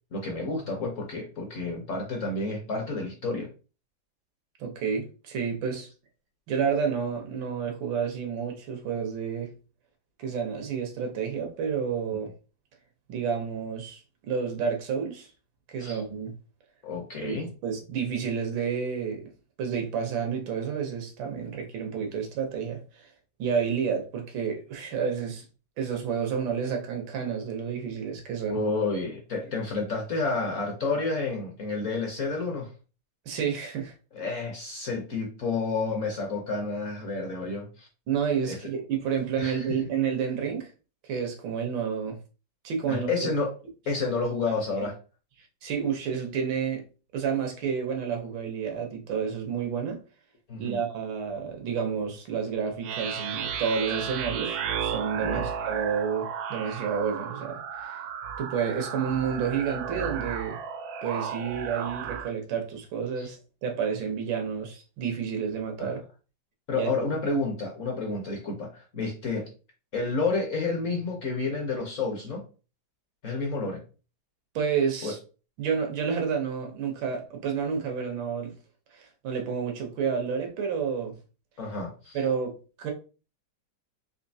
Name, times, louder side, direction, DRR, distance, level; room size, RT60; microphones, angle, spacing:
voice 1, 0.1-3.5 15.8-16.0 16.8-17.5 28.5-32.7 34.1-37.9 38.5-38.6 39.4-39.7 42.9-43.5 43.9-45.0 50.5-50.8 55.2-55.5 63.2-63.3 65.8-65.9 66.7-69.5 69.9-72.4 73.2-73.8 75.0-75.1 81.6-82.2, left 3 dB, 55° left, 0.9 m, -30 dB
voice 2, 4.6-5.9 6.5-9.5 10.2-12.3 13.1-15.3 15.7-16.3 17.2-17.4 17.6-19.3 19.6-23.1 23.4-25.4 25.8-28.6 33.3-33.9 38.1-40.7 41.0-42.2 42.6-43.3 44.8-44.9 45.6-46.8 47.1-50.0 50.6-58.0 58.4-60.6 61.0-63.4 63.6-66.0 66.7-66.9 74.5-75.2 75.6-78.5 78.9-81.1 82.1-82.9, right 6 dB, 90° right, 1.6 m, -30 dB
sound 1, 52.8-62.3, right 7 dB, 75° right, 0.9 m, -33 dB
4.2 x 2.6 x 2.6 m
omnidirectional pair, 2.1 m